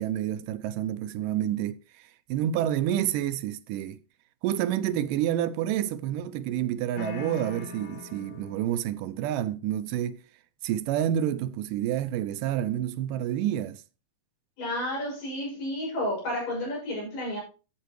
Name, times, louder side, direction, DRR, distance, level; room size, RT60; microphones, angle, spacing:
voice 1, 0.0-4.0 4.4-10.2 10.6-13.8, right 11 dB, 80° right, 2.1 m, -29 dB
sound 1, 7.0-8.9, left 5 dB, 55° left, 3.0 m, -40 dB
voice 2, 14.6-17.4, left 1 dB, 70° left, 8.2 m, -31 dB
13.5 x 7.9 x 3.1 m
omnidirectional pair, 3.9 m